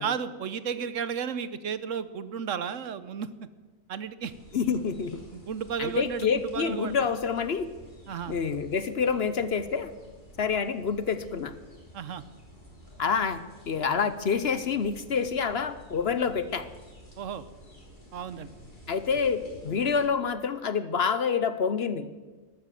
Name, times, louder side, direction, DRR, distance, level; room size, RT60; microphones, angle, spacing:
voice 1, 0.0-3.3 3.9-4.3 5.3-6.9 8.1-8.4 11.9-12.2 17.2-17.4 18.1-18.5, right 7 dB, 70° right, 14 dB, 1.1 m, -33 dB
sound 1, 4.2-20.1, equal, 35° left, 3.7 m, -51 dB
voice 2, 4.5-5.1 5.8-7.7 8.3-9.9 10.4-11.5 13.0-16.7 18.9-22.1, left 6 dB, 55° left, 12 dB, 0.9 m, -27 dB
13.5 x 12.5 x 7.6 m, 1.3 s
omnidirectional pair, 1.4 m